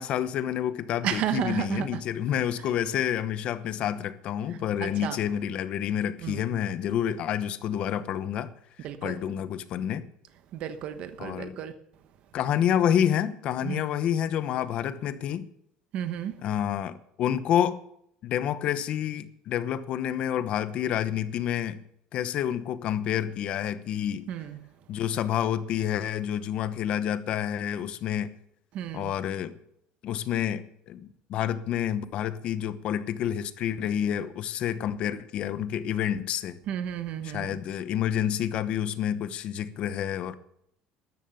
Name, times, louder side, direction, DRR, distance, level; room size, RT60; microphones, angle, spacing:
voice 1, 0.0-8.5 9.0-10.0 11.2-11.6 12.3-15.5 16.4-17.8 18.2-21.8 22.1-24.3 24.9-28.3 28.9-29.5 30.0-36.6 37.2-40.4, left 10 dB, 45° left, 0.9 m, -28 dB
voice 2, 1.0-2.0 4.8-5.2 6.2-6.4 8.8-9.2 10.5-11.7 13.6-13.9 15.9-16.4 24.3-24.6 28.7-29.1 36.7-37.5, right 10 dB, 50° right, 1.1 m, -32 dB
13.5 x 11.0 x 6.9 m
cardioid pair, 160°, 3 cm